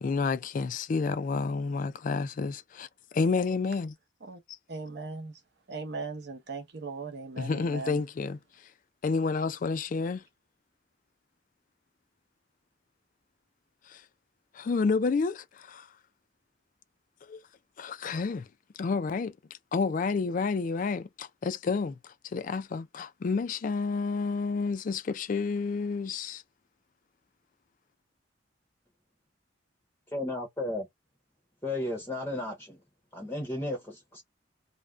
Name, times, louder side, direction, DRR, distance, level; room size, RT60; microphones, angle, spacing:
voice 1, 0.0-2.9 3.1-3.9 7.4-8.4 9.0-10.2 13.9-14.0 14.5-15.9 17.3-17.4 17.8-18.5 18.8-19.3 19.7-22.0 22.3-26.4, left 4 dB, 45° left, 0.3 m, -30 dB
voice 2, 4.7-5.3 5.7-8.0, right 4 dB, 60° right, 0.7 m, -38 dB
voice 3, 30.1-30.9 31.6-32.8 33.1-34.2, left 1 dB, 15° left, 0.7 m, -34 dB
2.4 x 2.2 x 3.1 m
head